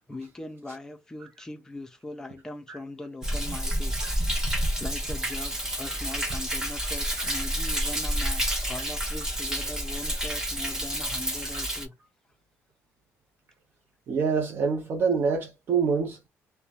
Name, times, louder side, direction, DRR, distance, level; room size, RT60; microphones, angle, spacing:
voice 1, 0.1-11.9, left 2 dB, 10° left, 0.5 m, -41 dB
Thunder, 3.2-11.8, equal, 10° right, 0.8 m, -29 dB
voice 2, 14.1-16.2, right 5 dB, 40° right, 0.5 m, -26 dB
3.0 x 2.1 x 2.4 m
cardioid pair, 140°, 6 cm